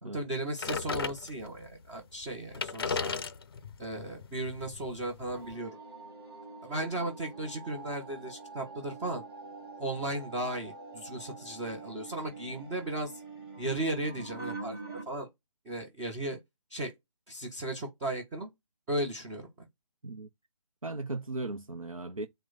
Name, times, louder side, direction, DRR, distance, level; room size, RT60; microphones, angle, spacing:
voice 1, 0.0-3.1 3.8-5.8 6.6-9.2 9.8-13.2 13.6-14.8 15.1-15.3 15.6-16.4 16.7-16.9 17.3-18.5 18.9-19.7, right 1 dB, 10° right, 0.6 m, -35 dB
sound 1, 0.6-1.7 2.2-2.3 2.5-5.5, left 5 dB, 45° left, 0.5 m, -36 dB
sound 2, 5.3-15.0, right 3 dB, 45° right, 1.8 m, -45 dB
voice 2, 20.8-22.3, right 2 dB, 90° right, 0.6 m, -37 dB
4.6 x 2.1 x 3.9 m
figure-of-eight pair, 145°, 17 cm